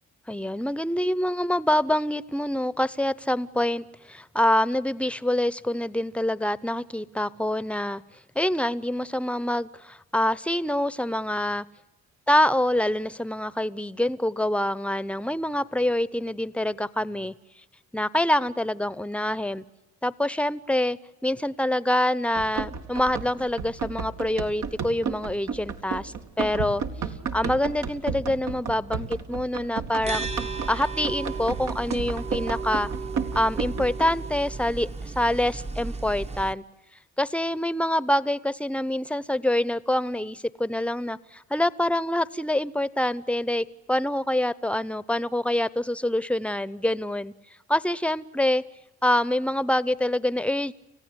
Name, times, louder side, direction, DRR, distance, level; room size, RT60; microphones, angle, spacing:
voice 1, 0.3-8.0 8.3-11.7 12.3-17.3 17.9-19.6 20.0-26.8 27.3-30.3 30.7-32.9 33.3-36.6 37.2-47.3 47.7-48.6 49.0-50.7, left 1 dB, 5° left, 18 dB, 0.8 m, -26 dB
Run, 22.3-34.0, right 6 dB, 75° right, 2.2 m, -33 dB
sound 1, 30.0-36.5, right 4 dB, 20° right, 0.9 m, -34 dB
29.5 x 15.5 x 9.8 m, 1.0 s
cardioid pair, 90°, 30 cm